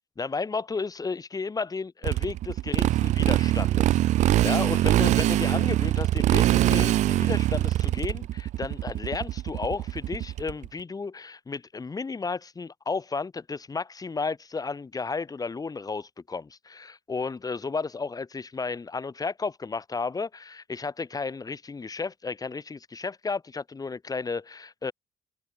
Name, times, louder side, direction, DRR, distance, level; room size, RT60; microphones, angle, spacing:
voice 1, 0.2-24.9, left 4 dB, 30° left, 8.0 m, -33 dB
Motorcycle, 2.0-10.7, right 14 dB, 75° right, 1.3 m, -23 dB
cardioid pair, 80°, 12 cm